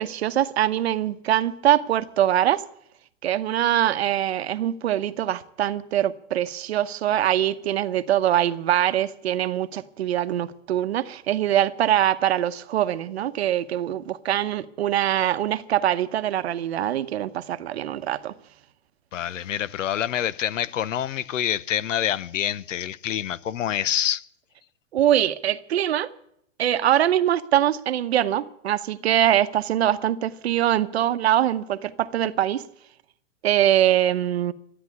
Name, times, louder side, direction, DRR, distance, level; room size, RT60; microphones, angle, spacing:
voice 1, 0.0-2.6 3.2-18.3 24.9-26.1 26.6-32.6 33.4-34.5, right 11 dB, 55° right, 0.9 m, -23 dB
voice 2, 19.1-24.2, left 10 dB, 80° left, 0.8 m, -26 dB
13.0 x 9.7 x 9.5 m
hypercardioid pair, 170°, 38 cm